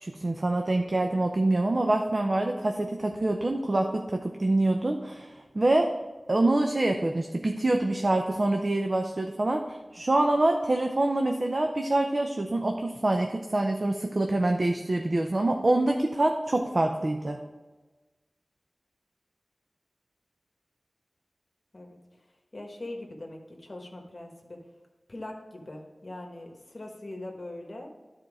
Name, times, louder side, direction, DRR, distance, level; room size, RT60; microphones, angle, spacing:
voice 1, 0.0-5.9 6.3-17.4, right 2 dB, 45° right, 4 dB, 0.6 m, -26 dB
voice 2, 22.5-24.6 25.1-27.9, left 1 dB, 45° left, 1 dB, 1.3 m, -41 dB
10.5 x 4.5 x 4.9 m, 1.2 s
wide cardioid pair, 75°, 0 cm